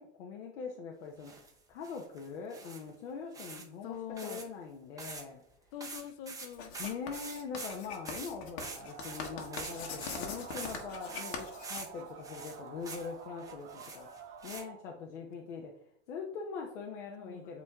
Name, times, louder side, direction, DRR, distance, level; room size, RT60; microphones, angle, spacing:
voice 1, 0.0-4.0 4.2-5.4 6.8-14.1 14.4-15.8 16.1-17.6, left 5 dB, 80° left, 1 dB, 1.1 m, -42 dB
sound 1, 1.2-1.5 1.8-2.9 3.3-3.7 3.9-4.5 5.0-5.2 5.5-5.6 5.8-10.8 11.1-11.9 12.2-13.1 13.4-14.6, right 4 dB, 10° right, 0.7 m, -45 dB
voice 2, 3.8-4.4 5.7-6.8 17.2-17.6, left 9 dB, 50° left, 10 dB, 0.8 m, -43 dB
Writing, 6.5-12.4, left 5 dB, 65° left, 1.5 m, -43 dB
sound 2, 8.6-14.8, right 6 dB, 45° right, 1.2 m, -49 dB
8.3 x 3.2 x 3.6 m, 0.70 s
supercardioid pair, 140°, 35 cm